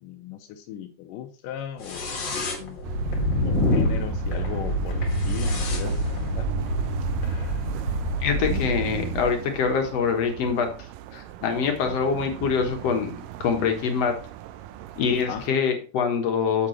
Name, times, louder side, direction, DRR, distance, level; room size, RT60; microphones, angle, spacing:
voice 1, 0.0-2.9 3.4-6.5 11.8-12.0 15.3-15.5, left 9 dB, 85° left, 5 dB, 2.3 m, -38 dB
sound 1, 1.8-9.3, left 1 dB, 40° left, 1.9 m, -27 dB
sound 2, 2.8-15.5, right 13 dB, 85° right, 2.3 m, -37 dB
voice 2, 8.2-10.7 11.1-13.1 13.4-14.1 15.0-16.7, left 6 dB, 60° left, 4 dB, 2.0 m, -24 dB
8.4 x 7.4 x 3.1 m, 0.37 s
omnidirectional pair, 3.8 m